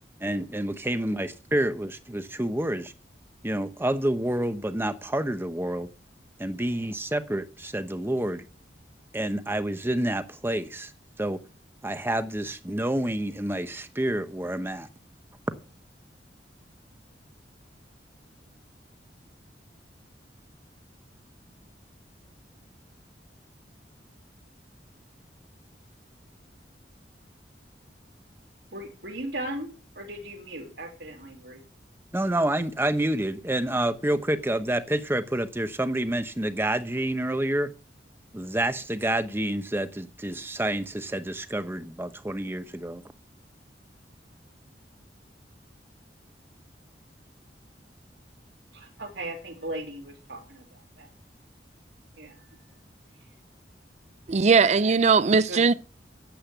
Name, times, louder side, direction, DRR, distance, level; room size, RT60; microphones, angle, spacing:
voice 1, 0.2-2.9 3.4-5.9 6.4-8.4 9.1-10.9 11.2-11.4 11.8-14.9 32.1-37.7 38.3-43.0, right 1 dB, 15° right, 0.9 m, -28 dB
voice 2, 28.7-29.7 29.9-31.6 48.7-51.1 52.2-52.5 55.5-55.8, right 1 dB, 70° right, 3.3 m, -37 dB
voice 3, 54.3-55.7, right 5 dB, 40° right, 0.5 m, -19 dB
10.5 x 7.9 x 7.9 m
head